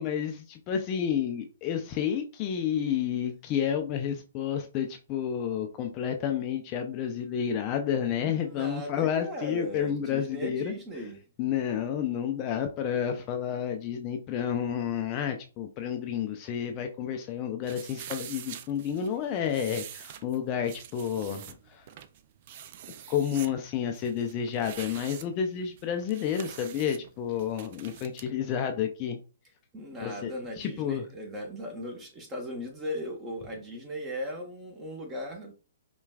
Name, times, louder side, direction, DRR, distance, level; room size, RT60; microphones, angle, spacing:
voice 1, 0.0-10.7 11.4-21.9 23.1-29.2 30.0-30.3 30.6-31.1, left 8 dB, 30° left, 5 dB, 0.4 m, -30 dB
voice 2, 8.2-11.2 29.7-35.5, equal, 20° right, 2 dB, 1.0 m, -38 dB
sound 1, 17.6-28.3, right 10 dB, 45° right, 0.4 m, -46 dB
5.6 x 2.3 x 2.3 m, 0.35 s
hypercardioid pair, 130°, 0 cm